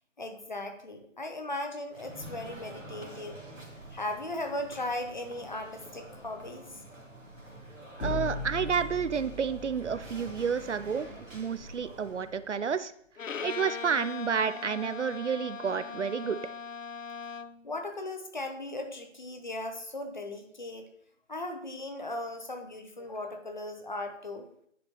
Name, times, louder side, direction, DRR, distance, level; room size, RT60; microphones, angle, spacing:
voice 1, 0.2-3.4 3.9-6.7 17.6-20.9 21.3-24.5, left 1 dB, 35° left, 5 dB, 0.8 m, -37 dB
sound 1, 1.9-12.5, right 1 dB, 80° right, 2.5 m, -47 dB
sound 2, 8.0-11.9, left 2 dB, 60° left, 2.0 m, -39 dB
voice 2, 8.0-12.9 13.4-16.4, right 6 dB, 65° right, 14 dB, 0.5 m, -30 dB
Bowed string instrument, 13.2-17.7, left 6 dB, 85° left, 0.5 m, -40 dB
9.9 x 5.1 x 3.0 m, 0.67 s
figure-of-eight pair, 155°, 38 cm